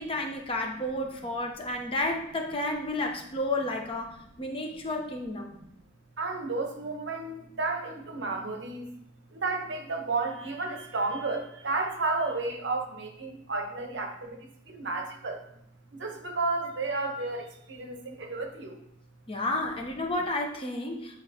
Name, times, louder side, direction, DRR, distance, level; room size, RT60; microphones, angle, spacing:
voice 1, 0.0-5.5 19.3-21.2, left 2 dB, 30° left, 2 dB, 0.8 m, -31 dB
voice 2, 6.2-8.9 9.4-14.3 14.8-15.4 16.0-18.7, right 3 dB, 65° right, 4 dB, 0.9 m, -32 dB
8.9 x 3.9 x 2.8 m, 0.77 s
head